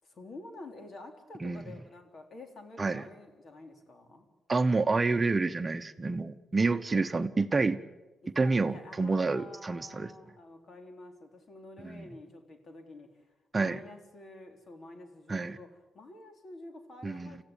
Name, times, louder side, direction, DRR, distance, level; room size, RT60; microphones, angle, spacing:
voice 1, 0.0-4.3 8.2-13.3 13.5-17.4, left 2 dB, 55° left, 4 dB, 3.7 m, -49 dB
voice 2, 4.5-7.8 8.4-10.1 11.8-12.1 13.5-13.8 15.3-15.6 17.0-17.4, right 3 dB, 30° right, 10 dB, 0.9 m, -28 dB
26.0 x 15.5 x 8.9 m, 1.2 s
cardioid pair, 65°, 0 cm